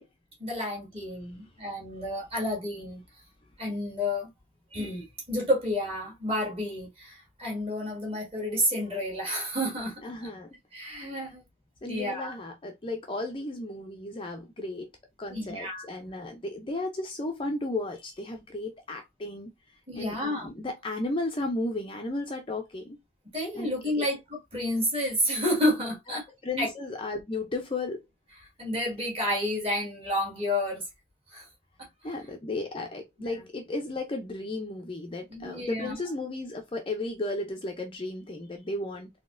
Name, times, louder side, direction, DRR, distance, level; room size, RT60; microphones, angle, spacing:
voice 1, 0.4-3.0 3.6-4.3 4.7-10.0 10.7-11.4 11.9-12.3 15.3-16.1 19.9-20.5 23.3-26.2 26.6-26.7 28.6-30.8 31.3-31.5 31.8-32.1 33.2-33.4 35.3-36.0, left 1 dB, 25° right, 1.7 m, -30 dB
voice 2, 10.0-10.5 11.8-14.9 15.2-19.5 20.0-23.0 23.5-23.7 24.0-24.1 26.1-28.0 32.0-39.1, left 2 dB, 25° left, 0.5 m, -34 dB
4.0 x 2.8 x 2.5 m
head